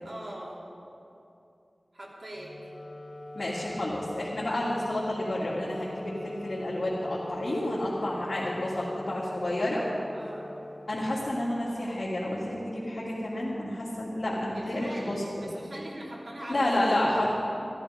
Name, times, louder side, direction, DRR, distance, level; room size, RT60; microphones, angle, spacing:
voice 1, 0.0-0.6 1.9-2.5 10.1-10.5 14.5-16.7, right 1 dB, 60° right, -4 dB, 3.1 m, -41 dB
Wind instrument woodwind instrument, 2.4-11.7, left 1 dB, 40° left, 0.6 m, -42 dB
voice 2, 3.3-9.9 10.9-15.5 16.5-17.4, left 1 dB, 65° left, -8 dB, 2.5 m, -30 dB
14.0 x 13.5 x 5.1 m, 2.7 s
wide cardioid pair, 65°, 0 cm